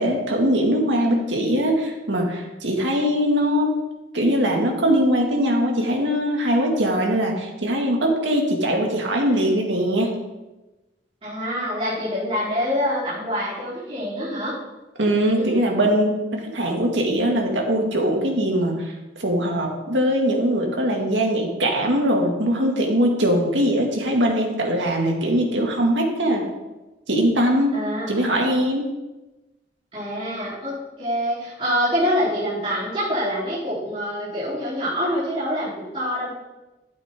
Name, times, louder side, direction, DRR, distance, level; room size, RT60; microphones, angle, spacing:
voice 1, 0.0-3.8 4.1-10.1 15.0-18.9 19.2-26.5 27.1-27.8 28.1-28.9, equal, 85° right, 0 dB, 2.1 m, -21 dB
voice 2, 11.2-14.5 15.4-16.0 27.7-28.3 29.9-36.3, equal, 30° right, -11 dB, 3.7 m, -26 dB
12.0 x 8.6 x 3.7 m, 1.1 s
head